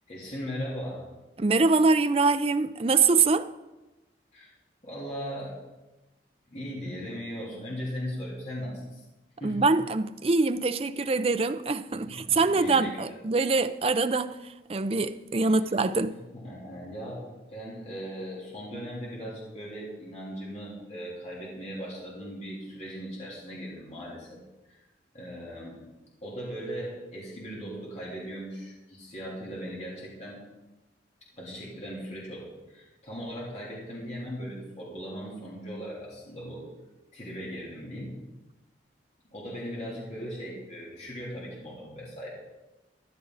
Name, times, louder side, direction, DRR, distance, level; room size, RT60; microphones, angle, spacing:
voice 1, 0.1-1.1 4.3-4.5 4.8-5.6 6.5-9.0 9.4-9.7 11.9-13.2 15.5-15.6 16.1-24.4 24.7-24.8 25.1-25.8 26.2-30.4 31.3-36.7 37.1-38.2 39.3-42.3, equal, 35° left, 3.4 m, -38 dB
voice 2, 1.4-3.5 9.4-14.4 14.7-16.2, right 3 dB, 30° right, 0.5 m, -24 dB
14.0 x 11.5 x 4.0 m
head